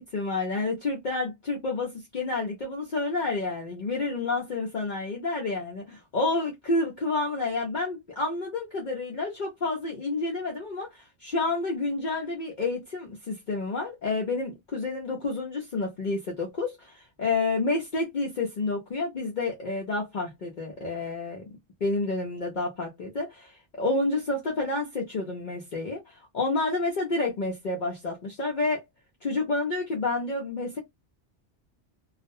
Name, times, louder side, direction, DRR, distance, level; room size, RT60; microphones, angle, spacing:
voice 1, 0.0-21.4 21.8-28.8 29.2-30.8, left 3 dB, 50° left, 0.7 m, -29 dB
2.4 x 2.1 x 2.6 m
omnidirectional pair, 1.1 m